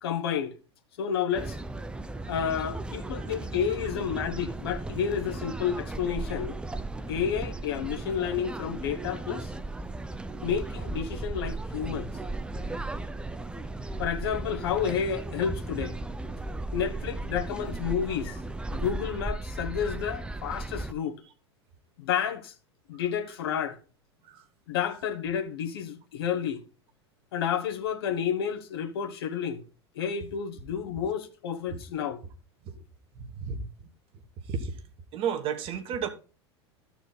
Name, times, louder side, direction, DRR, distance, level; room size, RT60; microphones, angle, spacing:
voice 1, 0.0-0.5 1.0-1.6 2.3-6.6 7.1-9.5 10.4-12.1 14.0-15.9 16.7-18.4 18.7-21.2 22.0-22.5 22.9-23.8 24.7-26.6 27.3-29.6 29.9-32.2, left 8 dB, 60° left, 1.3 m, -30 dB
sound 1, 1.3-20.9, right 2 dB, 5° right, 0.6 m, -36 dB
voice 2, 33.4-33.7 34.5-34.7 35.1-36.1, right 7 dB, 40° right, 1.3 m, -31 dB
13.5 x 4.5 x 4.0 m
figure-of-eight pair, 80°, 14 cm